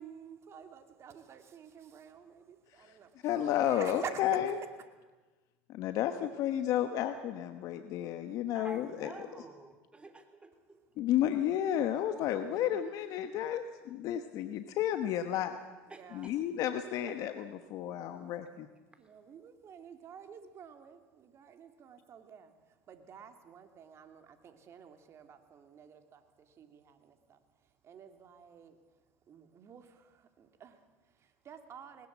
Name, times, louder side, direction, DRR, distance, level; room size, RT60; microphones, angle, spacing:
voice 1, 0.0-3.3 3.6-4.4 11.4-11.8 15.9-16.4 16.9-17.2 17.8-18.4 19.0-27.4 27.8-28.8 29.3-32.1, right 7 dB, 45° right, 7 dB, 2.7 m, -50 dB
voice 2, 3.2-4.5 5.7-9.1 11.0-15.6 16.1-18.7, left 11 dB, 60° left, 9 dB, 1.2 m, -32 dB
voice 3, 8.5-10.8 15.9-16.3, right 2 dB, 15° right, 7 dB, 3.6 m, -49 dB
20.0 x 20.0 x 7.5 m, 1.3 s
supercardioid pair, 85°, 7 cm